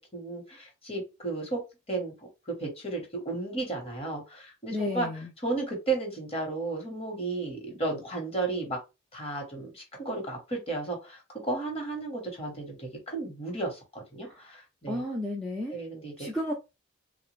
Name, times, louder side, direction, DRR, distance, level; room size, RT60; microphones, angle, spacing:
voice 1, 0.1-1.6 1.9-2.1 2.5-5.1 5.4-8.8 9.1-15.0 15.7-16.3, right 3 dB, 30° left, 0.9 m, -33 dB
voice 2, 4.7-5.3 14.2-14.4 14.9-15.8 16.2-16.5, left 1 dB, ahead, 0.4 m, -32 dB
3.2 x 2.0 x 3.0 m
head